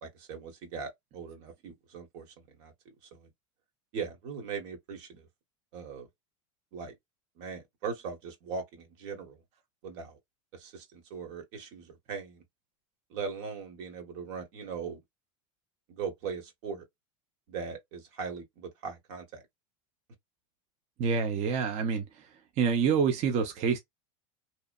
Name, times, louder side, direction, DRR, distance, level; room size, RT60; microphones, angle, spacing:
voice 1, 0.0-2.3 2.6-2.7 3.1-3.3 3.9-5.3 5.7-6.1 6.7-6.9 7.4-9.4 9.8-10.2 10.5-12.4 13.1-15.0 15.9-16.8 17.5-19.4, right 5 dB, 65° right, 1.1 m, -39 dB
voice 2, 21.0-22.0 22.6-23.8, right 6 dB, 45° right, 0.6 m, -27 dB
2.9 x 2.1 x 2.3 m
supercardioid pair, 105°, 16 cm